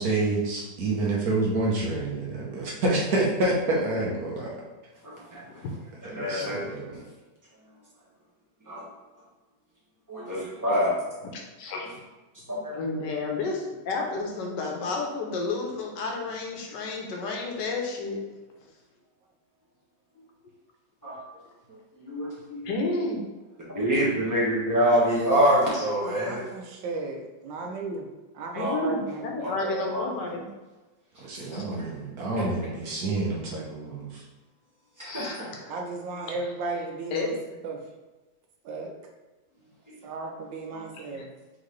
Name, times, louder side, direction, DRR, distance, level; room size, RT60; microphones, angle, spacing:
voice 1, 0.0-4.5 6.0-6.8 31.2-34.2, right 2 dB, 60° right, -3 dB, 1.2 m, -28 dB
voice 2, 5.0-5.6 6.0-6.6 8.7-8.8 10.1-10.9 12.5-12.8 21.0-21.2 21.7-22.7 23.7-26.4 28.6-28.8 29.4-30.0 31.4-31.5 31.8-31.9 32.4-32.5 35.0-35.7, equal, 10° right, -7 dB, 1.1 m, -26 dB
voice 3, 11.6-11.9 12.8-18.2 22.6-23.2 28.6-30.5 31.5-31.6 35.0-35.3 37.1-37.3 41.1-41.2, left 3 dB, 70° left, 1 dB, 1.3 m, -31 dB
voice 4, 26.0-28.1 28.3-29.3 35.7-37.4 37.6-37.8 38.6-38.9 40.0-41.3, right 3 dB, 80° right, 2 dB, 1.3 m, -35 dB
3.9 x 3.6 x 3.2 m, 1.2 s
omnidirectional pair, 2.0 m